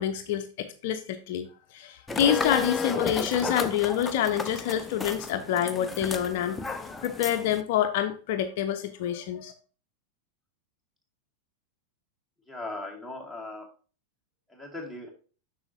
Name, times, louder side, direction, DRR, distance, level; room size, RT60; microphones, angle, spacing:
voice 1, 0.0-6.6 7.0-9.5, left 10 dB, 50° left, 7 dB, 0.7 m, -27 dB
sound 1, 2.1-7.6, left 4 dB, 10° left, 0.6 m, -33 dB
voice 2, 12.5-13.7 14.5-15.1, left 2 dB, 5° right, 2 dB, 2.2 m, -38 dB
8.0 x 5.6 x 2.7 m, 0.38 s
figure-of-eight pair, 90°, 0 cm